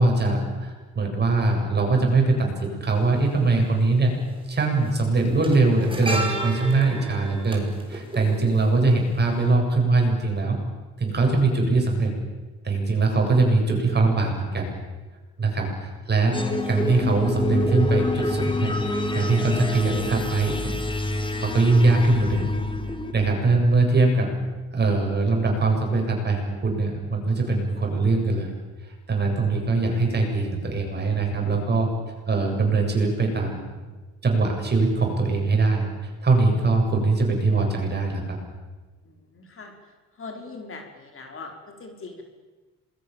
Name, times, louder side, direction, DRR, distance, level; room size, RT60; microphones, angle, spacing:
voice 1, 0.0-4.1 4.5-10.6 11.0-12.1 12.6-14.7 15.4-16.4 16.7-18.7 19.1-20.8 21.4-22.5 23.1-24.3 24.7-28.5 28.8-31.9 32.3-33.7 34.2-38.4, right 3 dB, 35° right, 1 dB, 8.0 m, -22 dB
sound 1, 2.9-3.0 4.2-4.5 4.8-9.1 9.4-9.5, right 2 dB, 15° right, 5.5 m, -33 dB
sound 2, 16.3-23.1, left 2 dB, 15° left, 3.1 m, -27 dB
voice 2, 39.1-39.7 40.2-42.2, left 3 dB, 45° left, 3 dB, 4.8 m, -40 dB
27.0 x 21.5 x 7.3 m, 1.3 s
cardioid pair, 90°, 30 cm